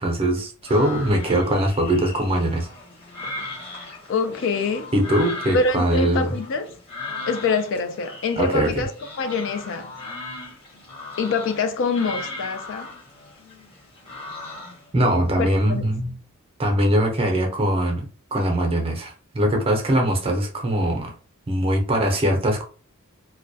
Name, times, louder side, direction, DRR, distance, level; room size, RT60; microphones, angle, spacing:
voice 1, 0.0-2.7 4.9-6.4 8.4-8.7 14.9-16.2 16.6-18.0 18.3-21.1 21.5-22.6, right 1 dB, 25° right, 0.6 m, -21 dB
sound 1, 0.6-14.9, left 2 dB, 25° left, 0.8 m, -38 dB
voice 2, 4.1-4.9 5.5-6.8 7.3-8.9 9.2-9.9 11.2-12.9 15.4-15.8, left 4 dB, 60° left, 0.4 m, -25 dB
2.2 x 2.2 x 2.6 m
head